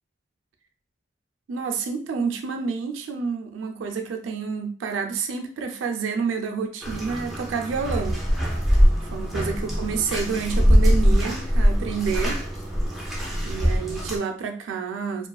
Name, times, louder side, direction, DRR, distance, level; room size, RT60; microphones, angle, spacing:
voice 1, 1.5-8.2 9.1-12.4 13.4-15.3, right 5 dB, 90° right, 4 dB, 0.3 m, -29 dB
Bathtub (filling or washing), 6.8-14.2, equal, ahead, 0.4 m, -22 dB
2.3 x 2.3 x 2.3 m, 0.41 s
head